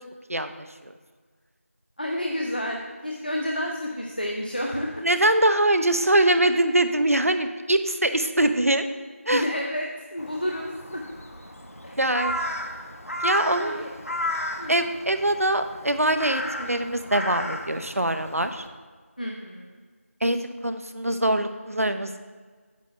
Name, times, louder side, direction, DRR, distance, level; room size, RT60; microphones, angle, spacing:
voice 1, 2.0-5.0 9.3-11.0 11.8-12.0 13.6-13.9 14.6-14.8 19.2-19.8, left 1 dB, 35° left, 1 dB, 0.6 m, -30 dB
voice 2, 5.0-8.9 9.3-9.4 12.0-12.4 13.2-13.8 14.7-18.6 20.2-22.2, right 1 dB, 70° right, 9 dB, 0.7 m, -23 dB
Crow, 10.2-18.7, equal, 70° left, 1.1 m, -34 dB
8.3 x 7.4 x 3.2 m, 1.5 s
figure-of-eight pair, 180°, 8 cm